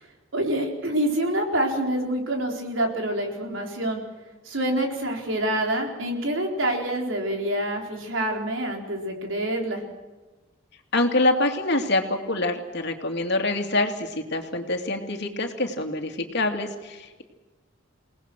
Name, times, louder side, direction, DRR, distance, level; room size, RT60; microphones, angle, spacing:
voice 1, 0.3-4.0 4.4-9.8, right 1 dB, 75° right, 2 dB, 4.4 m, -26 dB
voice 2, 10.9-17.2, left 2 dB, 60° left, 4 dB, 2.7 m, -25 dB
29.0 x 18.5 x 6.3 m, 1.3 s
head